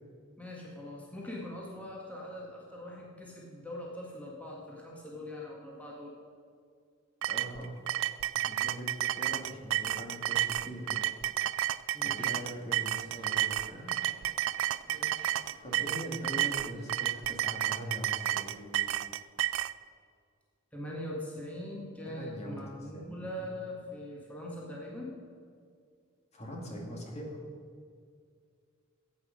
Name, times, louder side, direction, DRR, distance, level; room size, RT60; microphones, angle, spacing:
voice 1, 0.4-6.1 11.9-12.3 14.9-15.3 20.7-25.2, left 1 dB, 5° left, -4 dB, 1.9 m, -42 dB
sound 1, 7.2-19.7, right 12 dB, 70° right, 0.3 m, -31 dB
voice 2, 7.3-7.8 8.3-11.0 12.0-13.9 15.6-19.0 22.1-23.5 26.3-27.4, equal, 30° left, -1 dB, 2.2 m, -42 dB
sound 2, 12.8-18.6, right 1 dB, 50° right, 1.8 m, -59 dB
14.0 x 8.8 x 5.2 m, 2.2 s
head